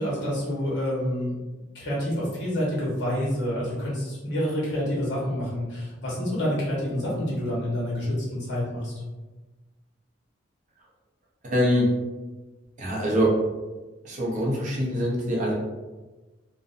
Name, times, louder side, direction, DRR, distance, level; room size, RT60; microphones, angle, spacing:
voice 1, 0.0-1.4 1.7-8.9, equal, 60° left, -6 dB, 0.9 m, -28 dB
voice 2, 11.4-11.9 12.8-13.3 14.0-15.5, equal, 40° right, -4 dB, 0.5 m, -24 dB
2.5 x 2.1 x 2.4 m, 1.2 s
head